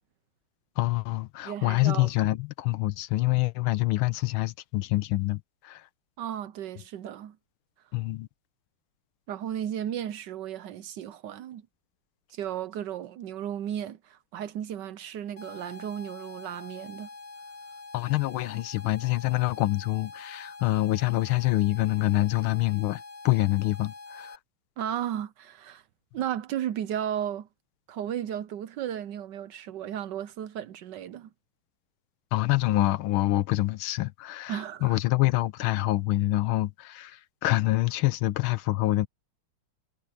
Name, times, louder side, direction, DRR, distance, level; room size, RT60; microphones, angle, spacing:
voice 1, 0.8-5.8 7.9-8.3 17.9-24.4 32.3-39.1, left 17 dB, 80° left, 1.4 m, -26 dB
voice 2, 1.4-2.1 6.2-7.4 9.3-11.7 12.3-17.1 24.8-25.8 26.1-27.5 27.9-31.3 34.5-35.0, right 10 dB, 70° right, 1.1 m, -34 dB
sound 1, 15.4-24.4, left 3 dB, 30° left, 2.0 m, -45 dB
omnidirectional pair, 2.3 m